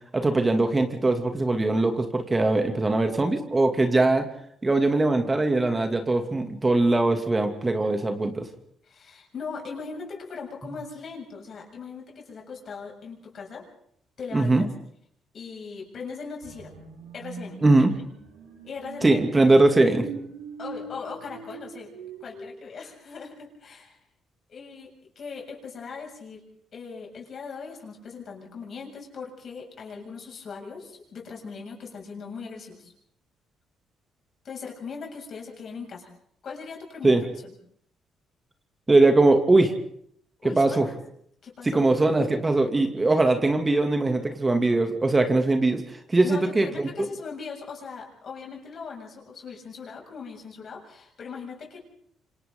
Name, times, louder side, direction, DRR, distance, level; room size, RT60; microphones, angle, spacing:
voice 1, 0.1-4.3 4.6-8.5 14.3-14.6 17.6-17.9 19.0-20.1 37.0-37.2 38.9-39.7 40.4-40.9 41.6-46.9, right 2 dB, 25° right, 5 dB, 2.7 m, -21 dB
voice 2, 8.8-13.7 14.2-14.7 15.3-16.7 17.1-17.6 18.6-19.6 20.6-21.9 22.2-24.0 24.5-26.4 26.7-32.9 34.4-36.1 36.4-37.5 40.4-41.0 41.4-41.9 46.2-51.8, left 5 dB, 55° left, 0 dB, 7.3 m, -39 dB
sound 1, 16.4-22.4, right 5 dB, 90° right, 5.8 m, -42 dB
27.0 x 26.5 x 4.0 m, 0.67 s
hypercardioid pair, 50°, 0 cm